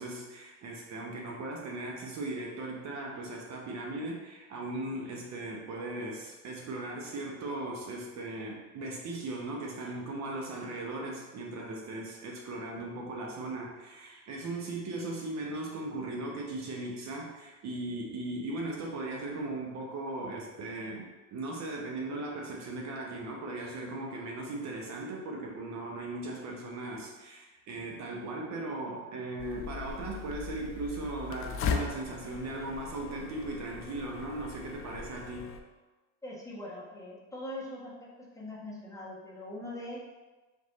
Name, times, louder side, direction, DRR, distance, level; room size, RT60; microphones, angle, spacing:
voice 1, 0.0-35.5, right 2 dB, 50° right, -1 dB, 0.9 m, -38 dB
sound 1, 29.4-35.6, left 6 dB, 40° left, 0.5 m, -38 dB
voice 2, 36.2-37.9 38.3-40.0, left 1 dB, 10° left, -6 dB, 1.2 m, -41 dB
3.5 x 3.1 x 4.0 m, 1.2 s
supercardioid pair, 95°, 35 cm